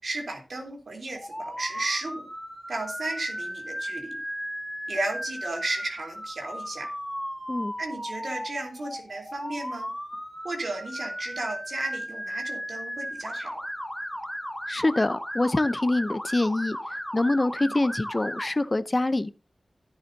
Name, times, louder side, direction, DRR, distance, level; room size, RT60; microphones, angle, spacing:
voice 1, 0.0-2.3 2.7-4.2 4.9-6.9 7.8-9.9 10.4-13.6 17.6-17.7, right 2 dB, 70° right, 3.5 m, -34 dB
Motor vehicle (road) / Siren, 1.2-18.5, equal, ahead, 2.5 m, -36 dB
voice 2, 14.7-16.8 17.1-19.3, left 2 dB, 35° left, 0.7 m, -25 dB
13.0 x 10.5 x 2.8 m
cardioid pair, 50°, 0 cm